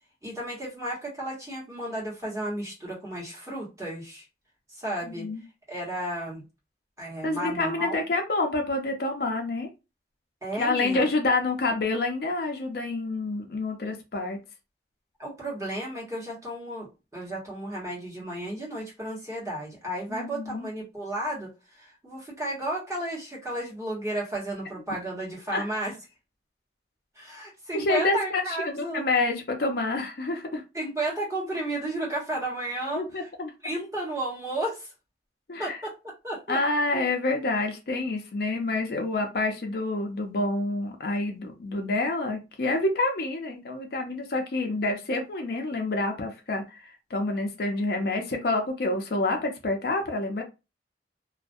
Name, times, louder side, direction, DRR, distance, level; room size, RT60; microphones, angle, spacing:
voice 1, 0.2-4.2 4.7-5.3 5.7-6.4 7.0-8.0 10.4-11.0 15.2-16.9 17.1-25.9 27.2-29.0 30.7-33.0 33.6-34.9 35.6-35.9 36.2-36.6 36.9-37.1, right 1 dB, 15° right, 1.0 m, -33 dB
voice 2, 5.1-5.4 7.2-9.7 10.6-14.4 20.1-20.7 25.5-25.6 27.7-30.6 32.9-33.5 35.5-35.8 36.5-50.4, left 2 dB, 60° left, 0.5 m, -28 dB
2.3 x 2.1 x 2.5 m
head